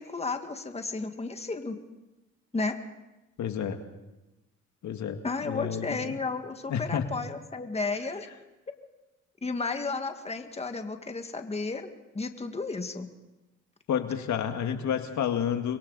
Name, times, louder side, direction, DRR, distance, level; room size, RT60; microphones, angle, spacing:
voice 1, 0.0-1.8 2.5-2.8 5.2-8.3 9.4-11.9 12.1-13.1, left 3 dB, 20° left, 6 dB, 1.8 m, -33 dB
voice 2, 3.4-3.8 4.8-6.2 6.7-7.1 13.9-15.8, left 8 dB, 70° left, 6 dB, 1.9 m, -30 dB
30.0 x 23.0 x 4.1 m, 1.0 s
cardioid pair, 90°, 30 cm